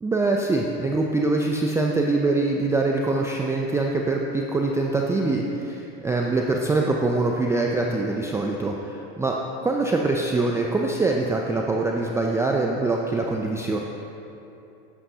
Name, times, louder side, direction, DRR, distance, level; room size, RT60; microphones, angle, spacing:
voice 1, 0.0-9.3 9.6-13.8, right 3 dB, 10° right, 0 dB, 0.4 m, -24 dB
11.0 x 8.6 x 2.7 m, 2.9 s
supercardioid pair, 120°, 32 cm